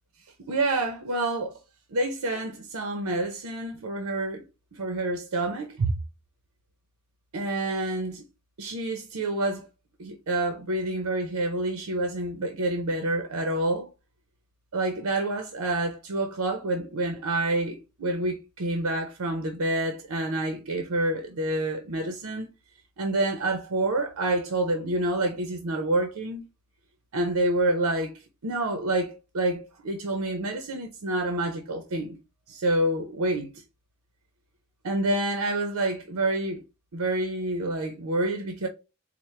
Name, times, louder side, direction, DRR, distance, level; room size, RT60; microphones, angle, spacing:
voice 1, 0.5-1.6 1.9-4.4 4.7-5.9 7.3-8.2 8.6-9.7 10.0-13.9 14.7-22.5 23.0-26.5 27.1-32.2 32.5-33.5 34.8-36.6 36.9-38.7, right 2 dB, 90° right, 0.6 m, -28 dB
4.3 x 2.1 x 3.2 m
head